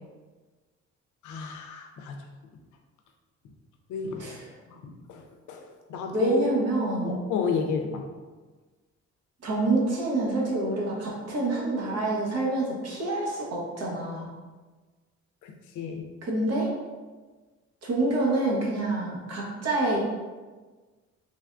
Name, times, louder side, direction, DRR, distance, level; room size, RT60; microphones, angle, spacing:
voice 1, 1.2-2.2 3.9-4.3 4.7-6.5 7.0-8.1 15.4-16.1, left 6 dB, 80° left, 3 dB, 0.5 m, -33 dB
voice 2, 6.1-7.2 9.4-14.3 16.2-16.7 17.8-20.0, right 2 dB, 55° right, -3 dB, 0.9 m, -27 dB
3.3 x 2.2 x 2.4 m, 1.3 s
cardioid pair, 90°, 30 cm